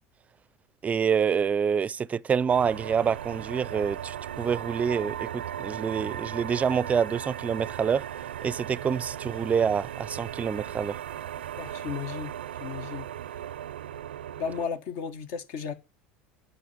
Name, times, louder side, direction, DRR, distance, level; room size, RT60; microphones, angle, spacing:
voice 1, 0.8-8.0 8.4-11.0, right 7 dB, 25° right, 0.4 m, -27 dB
sound 1, 2.5-14.7, right 11 dB, 90° right, 0.5 m, -37 dB
voice 2, 11.6-12.3 12.6-13.0 14.4-15.7, left 6 dB, 65° left, 1.6 m, -34 dB
9.1 x 5.8 x 7.3 m
hypercardioid pair, 85°, 5 cm